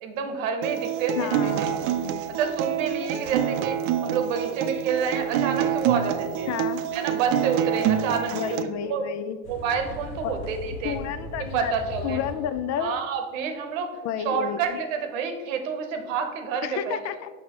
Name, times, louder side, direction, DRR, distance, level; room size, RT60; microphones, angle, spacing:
voice 1, 0.0-1.8 2.3-6.5 6.9-8.6 8.9-9.0 9.5-11.0 11.5-12.2 12.8-14.0 14.2-17.0, right 6 dB, 85° right, 6 dB, 1.0 m, -28 dB
Acoustic guitar, 0.6-8.6, right 10 dB, 65° right, 0.5 m, -27 dB
voice 2, 1.2-2.2 6.5-6.8 8.3-9.4 10.2-10.4 10.8-11.7 12.0-12.9 14.0-14.8 16.6-17.3, left 9 dB, 45° left, 12 dB, 0.5 m, -31 dB
sound 1, 9.4-12.9, left 1 dB, 70° left, 1.1 m, -38 dB
5.9 x 5.4 x 2.9 m, 1.4 s
supercardioid pair, 100°, 38 cm